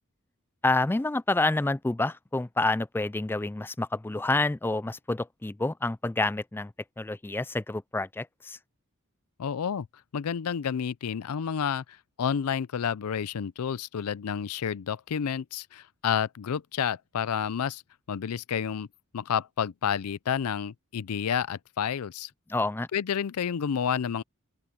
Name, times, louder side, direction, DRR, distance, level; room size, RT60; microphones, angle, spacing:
voice 1, 0.6-8.6 22.5-22.9, left 2 dB, 10° left, 0.3 m, -28 dB
voice 2, 9.4-9.9 10.1-11.8 12.2-17.8 18.1-18.9 19.1-22.3 22.9-24.2, left 7 dB, 85° left, 0.5 m, -30 dB
open air
head